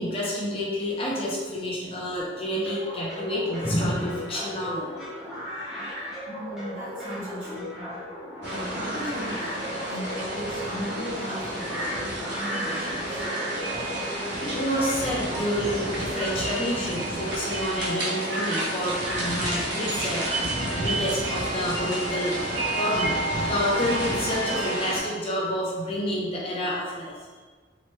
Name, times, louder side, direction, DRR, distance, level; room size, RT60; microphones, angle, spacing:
voice 1, 0.0-4.9 14.4-20.3 20.7-27.1, equal, 30° left, -5 dB, 0.5 m, -29 dB
sound 1, 2.7-16.5, equal, 5° right, 0.8 m, -37 dB
voice 2, 6.3-8.0 8.5-13.2 24.1-24.2, equal, 45° right, -9 dB, 1.2 m, -37 dB
sound 2, 8.4-25.0, right 1 dB, 70° right, 0.6 m, -30 dB
2.9 x 2.1 x 3.0 m, 1.4 s
head